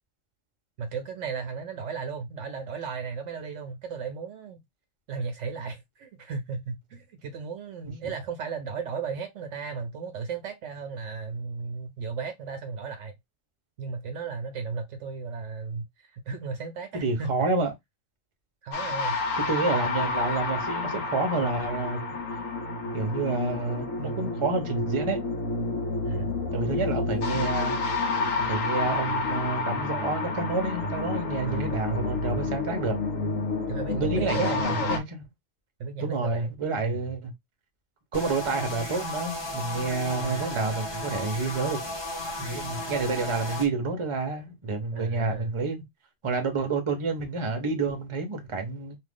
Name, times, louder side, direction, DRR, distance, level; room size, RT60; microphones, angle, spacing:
voice 1, 0.8-4.6 5.1-13.1 13.8-17.3 18.6-19.2 26.0-26.5 31.5-32.0 33.7-35.0 35.8-36.6 36.9-37.0 40.2-40.4 44.9-45.5, right 5 dB, 70° right, 0.9 m, -35 dB
voice 2, 16.9-17.7 19.5-22.0 22.9-25.2 26.5-27.8 28.1-28.2 28.5-33.0 33.9-35.2 36.0-37.3 38.1-41.9 42.4-45.8 46.2-49.0, right 3 dB, 30° right, 0.6 m, -29 dB
sound 1, 18.7-35.0, left 3 dB, 90° left, 1.1 m, -29 dB
sound 2, 38.1-43.7, left 1 dB, 25° left, 0.9 m, -34 dB
2.7 x 2.4 x 3.4 m
omnidirectional pair, 1.3 m